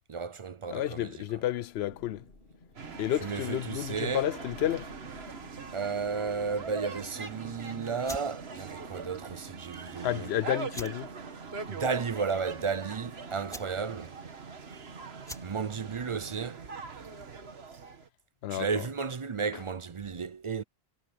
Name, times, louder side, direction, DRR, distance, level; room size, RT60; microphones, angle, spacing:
voice 1, 0.1-1.4 3.2-4.3 5.7-10.3 11.7-14.1 15.4-16.6 18.5-20.6, right 5 dB, 40° right, 0.5 m, -33 dB
voice 2, 0.7-2.2 3.0-4.9 10.0-11.1 18.4-18.7, left 12 dB, 80° left, 0.8 m, -31 dB
Thunder / Rain, 1.5-9.9, left 2 dB, 65° left, 2.6 m, -57 dB
sound 1, 2.8-18.1, right 5 dB, 75° right, 1.7 m, -42 dB
sound 2, 8.0-17.5, equal, 5° left, 3.5 m, -50 dB
omnidirectional pair, 1.1 m